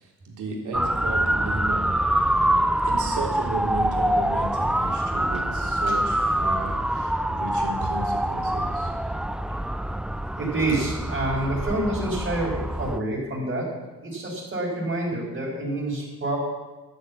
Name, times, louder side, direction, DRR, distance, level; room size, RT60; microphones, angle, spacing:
voice 1, 0.0-2.0 2.8-8.9, right 3 dB, 75° right, -1 dB, 3.7 m, -34 dB
Motor vehicle (road) / Siren, 0.7-13.0, right 1 dB, 5° right, 0.4 m, -25 dB
voice 2, 10.4-13.7 14.0-16.4, right 2 dB, 35° right, -6 dB, 4.6 m, -27 dB
12.0 x 8.2 x 8.4 m, 1.2 s
cardioid pair, 90°, 30 cm